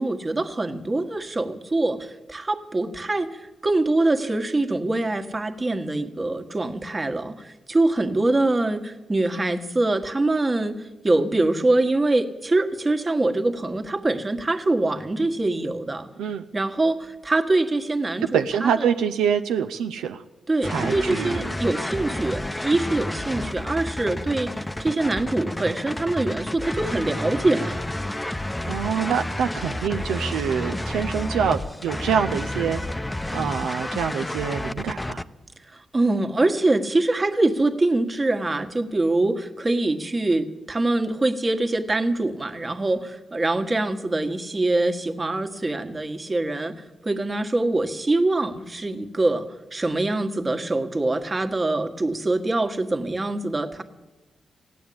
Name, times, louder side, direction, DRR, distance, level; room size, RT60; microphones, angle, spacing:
voice 1, 0.0-16.1 16.5-18.9 20.5-27.8 35.7-49.5 49.7-53.8, right 2 dB, 35° right, 6 dB, 1.5 m, -24 dB
voice 2, 18.3-20.2 20.6-21.5 28.7-32.8 33.3-35.2, right 7 dB, 90° right, 6 dB, 0.5 m, -25 dB
sound 1, 20.6-35.2, left 1 dB, 15° left, 0.7 m, -30 dB
15.5 x 9.3 x 8.7 m, 1.1 s
supercardioid pair, 45°, 0 cm